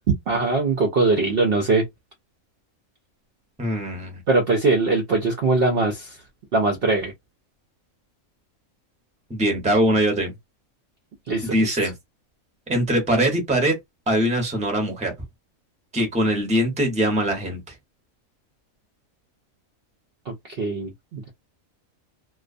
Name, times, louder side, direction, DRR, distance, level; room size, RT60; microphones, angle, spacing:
voice 1, 0.3-1.8 4.3-6.2 6.5-7.1 11.3-11.7 20.3-21.3, right 3 dB, 60° right, 0.6 m, -21 dB
voice 2, 3.6-4.2 9.3-10.3 11.4-11.9 12.7-13.8 14.1-15.1 15.9-17.7, right 1 dB, 5° right, 0.6 m, -22 dB
2.4 x 2.3 x 2.4 m
omnidirectional pair, 1.5 m